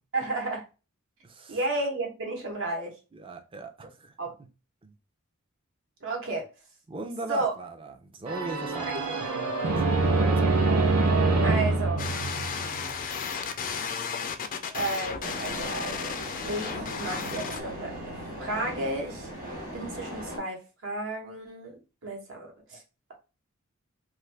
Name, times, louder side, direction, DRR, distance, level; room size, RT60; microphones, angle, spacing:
voice 1, 0.1-0.6 1.5-2.9 4.2-4.3 6.0-6.5 7.3-7.5 8.8-9.4 10.1-10.6 11.4-12.0 14.7-16.2 16.4-18.1 18.4-19.3 19.7-22.8, right 2 dB, 65° right, 1.1 m, -33 dB
voice 2, 1.2-1.6 3.1-4.1 4.8-4.9 6.9-8.9 9.7-10.1, right 3 dB, 25° right, 0.5 m, -38 dB
sound 1, 8.3-13.0, right 3 dB, 80° right, 0.7 m, -25 dB
sound 2, 12.0-17.6, left 6 dB, 40° left, 0.4 m, -34 dB
sound 3, 15.2-20.4, equal, 40° right, 1.2 m, -38 dB
2.6 x 2.5 x 3.2 m
head